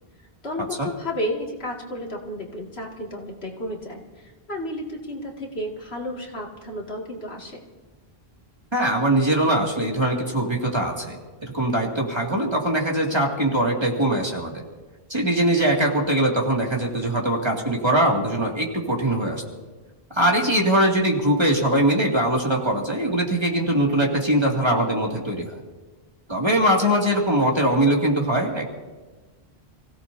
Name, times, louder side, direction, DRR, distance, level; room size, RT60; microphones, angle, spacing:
voice 1, 0.4-7.6, left 1 dB, 80° left, -1 dB, 2.5 m, -32 dB
voice 2, 8.7-14.6 15.1-19.4 20.1-25.5 26.3-28.7, right 1 dB, 25° right, -1 dB, 2.4 m, -22 dB
29.0 x 16.5 x 2.7 m, 1.3 s
omnidirectional pair, 1.0 m